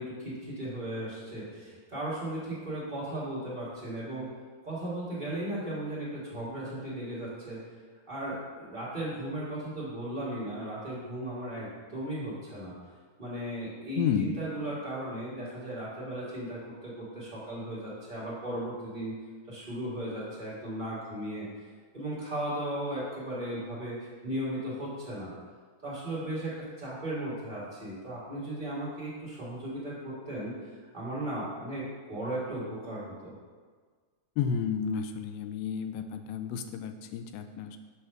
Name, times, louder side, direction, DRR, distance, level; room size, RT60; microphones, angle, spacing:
voice 1, 0.0-4.3 4.6-7.6 8.1-12.7 13.2-19.1 19.5-21.5 21.9-24.0 24.2-25.3 25.8-26.5 26.8-30.5 30.9-31.8 32.1-33.3, right 1 dB, 25° right, -9 dB, 1.1 m, -36 dB
voice 2, 14.0-14.3 34.4-37.8, left 7 dB, 90° left, 7 dB, 2.3 m, -31 dB
8.1 x 3.2 x 5.9 m, 1.5 s
omnidirectional pair, 4.0 m